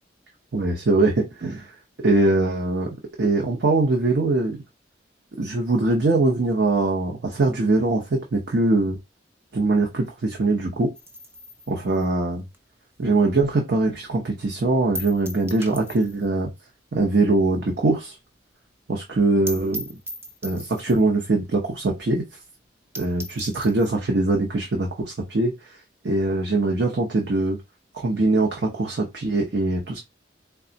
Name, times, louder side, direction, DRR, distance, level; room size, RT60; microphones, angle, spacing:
voice 1, 0.5-1.7 2.0-4.6 5.4-9.0 9.5-10.9 11.7-12.4 13.0-16.5 16.9-18.2 18.9-19.8 20.4-22.2 23.0-25.5 26.0-27.6 27.9-30.0, right 2 dB, 70° right, 0.7 m, -22 dB
sound 1, 11.0-13.6 13.9-14.0 14.4-14.5 14.9-16.4 16.6-16.7 17.0-17.1 17.5-17.6 17.9-18.0 18.2-18.3 18.6-18.7 19.1-19.2 19.5-21.1 21.8-21.9 22.2-22.3 22.7-22.8 23.0-23.9, equal, 15° right, 0.5 m, -38 dB
3.4 x 2.3 x 3.9 m
head